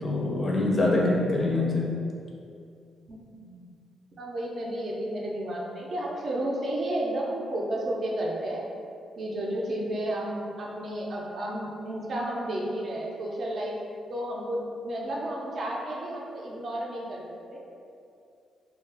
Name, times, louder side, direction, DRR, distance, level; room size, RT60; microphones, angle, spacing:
voice 1, 0.0-2.0, left 2 dB, 40° left, -3 dB, 0.5 m, -24 dB
voice 2, 3.1-3.7 4.2-8.6 9.2-13.8 14.1-17.6, right 1 dB, 50° right, -3 dB, 0.5 m, -32 dB
2.3 x 2.2 x 3.3 m, 2.4 s
cardioid pair, 105°, 0 cm